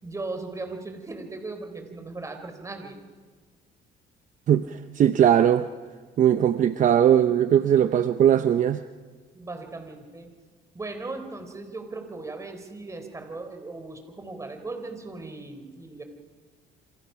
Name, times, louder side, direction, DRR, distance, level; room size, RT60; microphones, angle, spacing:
voice 1, 0.0-3.0 9.3-10.3 10.7-16.0, right 3 dB, 20° right, 5 dB, 4.1 m, -37 dB
voice 2, 4.5-5.7 6.2-8.8, right 9 dB, 50° right, 10 dB, 0.8 m, -20 dB
28.0 x 26.5 x 5.8 m, 1.5 s
cardioid pair, 110°, 17 cm